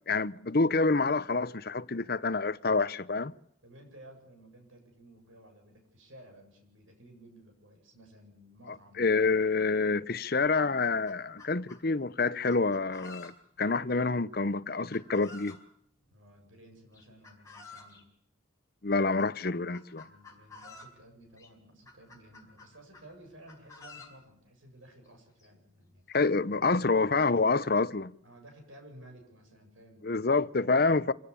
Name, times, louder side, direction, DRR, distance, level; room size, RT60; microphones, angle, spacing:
voice 1, 0.1-3.3 9.0-15.6 18.8-20.1 26.1-28.1 30.0-31.1, left 3 dB, 50° left, 0.8 m, -27 dB
voice 2, 3.6-9.1 16.1-18.1 20.1-26.9 28.2-30.6, right 1 dB, 85° right, 7.8 m, -55 dB
Chicken rooster, 10.5-11.8 12.5-13.6 14.9-15.6 16.9-18.0 18.9-19.3 19.7-21.0 21.4-21.5 21.9-23.1 23.5-24.2 25.1-25.2 25.4-25.5 26.1-26.2 26.8-27.3, left 3 dB, 15° left, 4.9 m, -51 dB
26.0 x 17.0 x 7.1 m
head